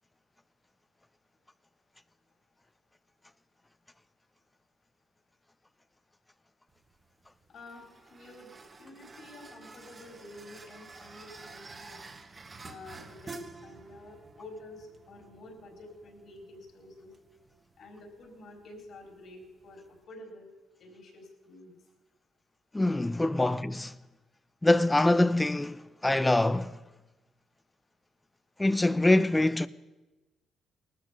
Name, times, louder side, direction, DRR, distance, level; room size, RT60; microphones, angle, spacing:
sound 1, 6.7-20.0, right 3 dB, 30° right, 1.2 m, -50 dB
voice 1, 7.5-8.5 8.8-12.0 12.6-17.1 17.8-20.5 20.8-21.8 23.3-23.6, left 2 dB, 65° left, 4.0 m, -49 dB
voice 2, 22.7-23.6 24.6-26.8 28.6-29.7, left 2 dB, 15° left, 0.5 m, -24 dB
18.5 x 13.5 x 5.1 m
cardioid pair, 90°, 0 cm